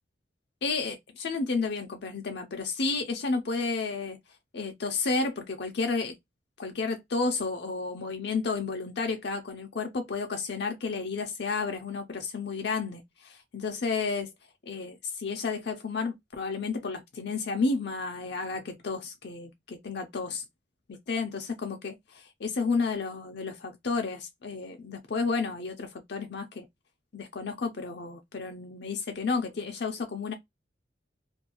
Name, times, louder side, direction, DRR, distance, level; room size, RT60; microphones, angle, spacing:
voice 1, 0.6-4.2 4.5-6.2 6.6-14.3 14.6-20.4 20.9-26.7 27.1-30.3, left 4 dB, 60° left, 0.5 m, -32 dB
2.5 x 2.2 x 2.9 m
head